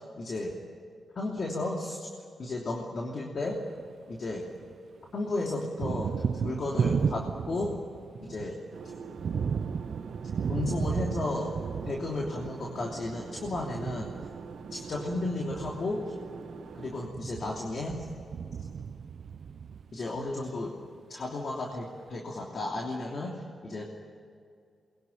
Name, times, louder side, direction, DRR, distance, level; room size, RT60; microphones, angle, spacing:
voice 1, 0.2-0.5 1.1-2.1 2.4-3.6 4.1-4.4 5.1-7.7 8.2-8.6 10.5-11.5 11.9-14.1 14.7-16.1 16.7-18.0 19.9-20.7 21.1-23.3 23.6-23.8, left 2 dB, 55° left, -1 dB, 3.0 m, -33 dB
Thunder, 3.5-4.8 5.0-20.3, right 6 dB, 65° right, 0.8 m, -34 dB
sound 1, 8.7-17.1, right 5 dB, 85° right, 2.0 m, -44 dB
23.0 x 22.0 x 9.1 m, 2.3 s
cardioid pair, 85°, 0 cm